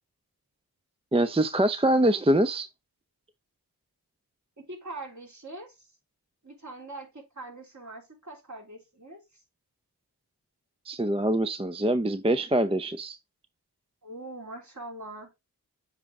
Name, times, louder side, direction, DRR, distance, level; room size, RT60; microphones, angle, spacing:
voice 1, 1.1-2.7 10.9-13.2, right 1 dB, 15° right, 0.5 m, -24 dB
voice 2, 4.6-5.9 6.4-9.4 14.0-15.4, right 2 dB, 45° right, 3.2 m, -43 dB
7.3 x 4.7 x 3.5 m
cardioid pair, 45°, 39 cm